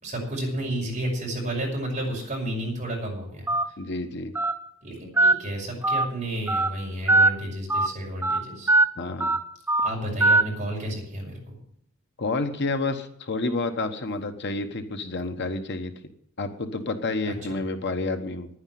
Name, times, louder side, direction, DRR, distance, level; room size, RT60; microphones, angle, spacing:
voice 1, 0.0-3.5 4.8-8.7 9.8-11.5 17.3-17.6, right 1 dB, 35° right, -2 dB, 5.8 m, -31 dB
Telephone, 3.5-3.6 4.3-4.5 5.2-5.3 5.8-6.0 6.5-6.7 7.1-7.3 7.7-7.9 8.2-8.4 8.7-8.8 9.2-9.4 9.7-9.9 10.2-10.4, right 2 dB, 10° right, 0.8 m, -19 dB
voice 2, 3.8-4.3 9.0-9.4 12.2-15.9 16.4-18.5, left 3 dB, 55° left, 7 dB, 1.1 m, -29 dB
10.5 x 9.8 x 9.2 m, 0.71 s
head